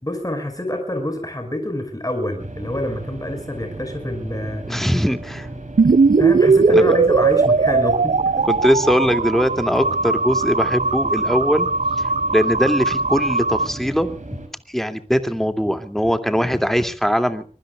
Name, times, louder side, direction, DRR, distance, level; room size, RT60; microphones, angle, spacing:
voice 1, 0.0-4.8 6.2-8.5, left 1 dB, 25° left, 5 dB, 5.4 m, -27 dB
sound 1, 2.4-14.5, right 2 dB, 65° right, 6.5 m, -36 dB
voice 2, 4.7-5.5 6.7-6.8 8.5-11.7 12.0-12.1 12.3-14.1 14.7-17.4, equal, ahead, 8 dB, 2.5 m, -20 dB
sound 2, 5.8-13.7, right 4 dB, 80° right, 0.7 m, -18 dB
24.5 x 23.5 x 2.4 m, 0.40 s
wide cardioid pair, 50°, 14 cm